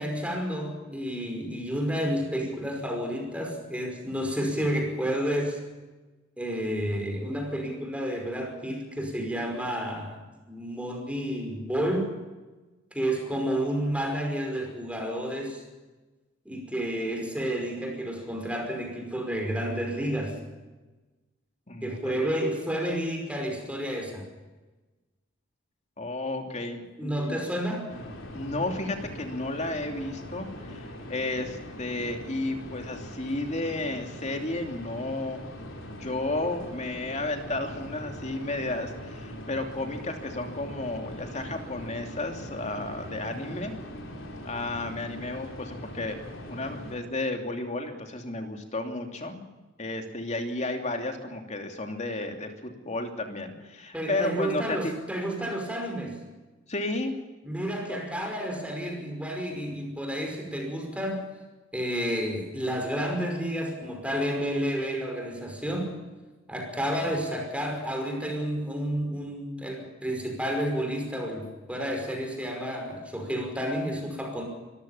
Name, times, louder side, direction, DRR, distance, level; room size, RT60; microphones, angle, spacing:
voice 1, 0.0-5.6 6.4-10.1 10.5-12.2 12.9-15.6 16.5-20.4 21.8-24.3 27.0-27.9 53.9-56.2 57.5-61.3 61.7-66.0 66.5-74.4, equal, 5° right, 3 dB, 5.3 m, -30 dB
voice 2, 21.7-22.3 26.0-27.4 28.3-43.7 44.4-49.4 49.8-54.9 56.7-57.2, left 2 dB, 35° left, 4 dB, 2.9 m, -33 dB
sound 1, 27.9-47.0, equal, 70° left, 4.6 m, -41 dB
24.5 x 15.0 x 7.2 m, 1.2 s
head